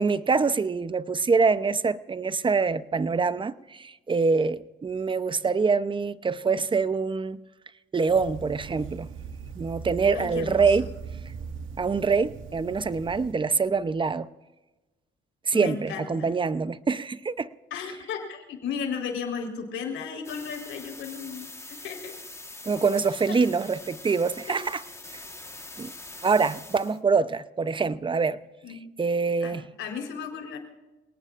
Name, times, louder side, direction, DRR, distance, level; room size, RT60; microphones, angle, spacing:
voice 1, 0.0-7.4 7.9-9.1 9.6-10.8 11.8-14.3 15.5-17.5 22.7-24.8 25.1-25.2 25.8-25.9 26.2-28.4 29.0-29.6, right 4 dB, 25° right, 0.7 m, -25 dB
sound 1, 8.1-13.3, right 6 dB, 90° right, 2.0 m, -40 dB
voice 2, 10.1-10.9 15.5-16.3 17.7-21.5 21.8-22.2 23.3-23.4 24.5-24.6 28.6-28.8 29.4-30.6, left 6 dB, 85° left, 4.2 m, -35 dB
sound 2, 20.2-27.0, left 2 dB, 15° left, 1.4 m, -44 dB
27.5 x 18.5 x 2.5 m
cardioid pair, 90°, 20 cm